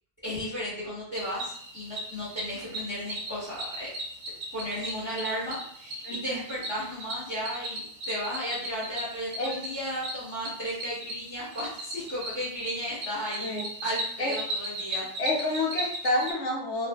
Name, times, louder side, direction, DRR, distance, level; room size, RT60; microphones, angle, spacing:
voice 1, 0.2-3.9 4.5-15.1, equal, 10° left, -10 dB, 1.1 m, -34 dB
Cricket, 1.1-16.3, right 1 dB, 60° right, 0.6 m, -37 dB
voice 2, 6.0-6.4 9.4-9.5 13.4-13.6 14.2-14.3 14.9-16.9, left 2 dB, 75° left, -1 dB, 1.0 m, -29 dB
2.5 x 2.5 x 2.2 m, 0.63 s
omnidirectional pair, 1.2 m